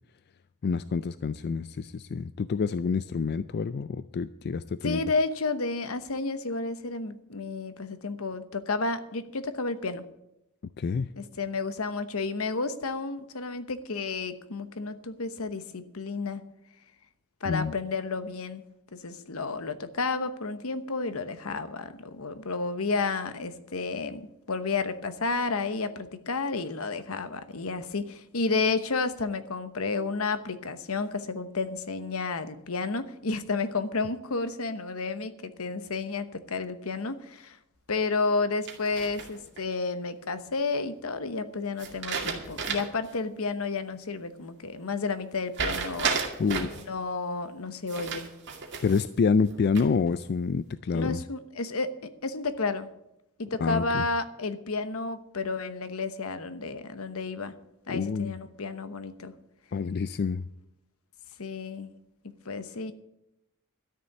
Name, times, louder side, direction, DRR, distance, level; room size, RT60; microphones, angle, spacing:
voice 1, 0.6-5.0 10.8-11.1 17.4-17.7 46.4-46.7 48.8-51.2 53.6-54.0 57.9-58.3 59.7-60.4, left 5 dB, 50° left, 14 dB, 0.4 m, -27 dB
voice 2, 4.8-10.0 11.2-16.4 17.4-18.6 18.9-37.6 37.9-46.2 46.9-48.3 50.9-51.9 52.2-52.9 53.4-57.5 57.9-59.3 61.4-61.9 62.4-62.9, left 3 dB, 75° left, 11 dB, 1.0 m, -31 dB
sound 1, 38.7-39.6 41.8-43.1 43.5-43.6 45.5-46.8 47.9-49.1 49.5-50.1, right 5 dB, 55° right, 2.3 m, -32 dB
13.0 x 6.9 x 9.2 m, 0.85 s
head